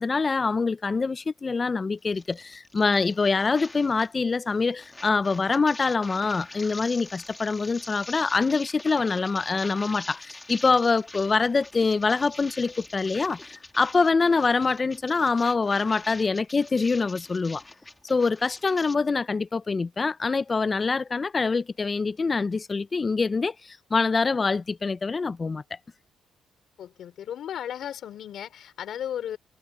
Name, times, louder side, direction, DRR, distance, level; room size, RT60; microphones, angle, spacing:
voice 1, 0.0-17.6 18.1-25.6, left 4 dB, 30° left, 0.4 m, -25 dB
sound 1, 2.1-4.2 4.4-18.9, left 2 dB, 15° left, 1.7 m, -44 dB
voice 2, 26.8-29.4, left 10 dB, 70° left, 4.8 m, -35 dB
cardioid pair, 90°, 0 cm